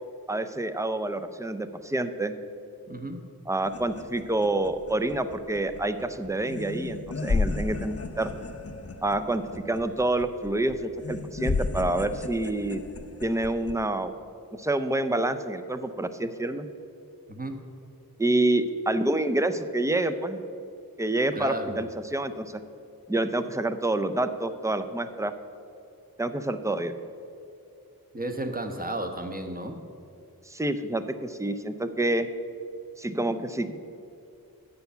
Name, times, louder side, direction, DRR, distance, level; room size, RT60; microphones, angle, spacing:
voice 1, 0.3-2.3 3.5-8.3 9.0-12.8 13.2-14.1 14.5-16.7 18.2-20.4 21.0-22.6 23.1-25.3 26.2-26.9 30.5-32.3 33.0-33.8, right 2 dB, 10° right, 10 dB, 0.5 m, -27 dB
voice 2, 2.9-3.2 17.3-17.6 21.3-21.9 28.1-29.8, right 1 dB, 25° right, 5 dB, 1.0 m, -33 dB
sound 1, 3.6-13.9, left 3 dB, 40° left, 0.7 m, -34 dB
9.3 x 6.9 x 6.8 m, 2.6 s
wide cardioid pair, 65°, 37 cm